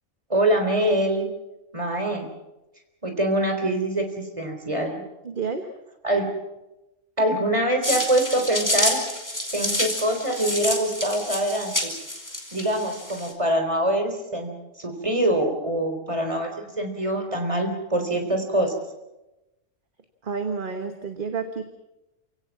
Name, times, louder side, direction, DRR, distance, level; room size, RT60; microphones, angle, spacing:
voice 1, 0.3-1.3 1.7-2.3 3.0-5.0 6.0-6.3 7.2-9.0 9.5-11.9 12.5-14.5 14.8-16.5 16.8-18.7, right 1 dB, 20° right, 4 dB, 3.9 m, -24 dB
voice 2, 5.2-5.7 20.2-21.6, right 5 dB, 40° right, 6 dB, 1.5 m, -30 dB
sound 1, 7.8-13.3, left 1 dB, 10° left, 3.1 m, -28 dB
28.0 x 17.0 x 7.3 m, 0.99 s
omnidirectional pair, 1.5 m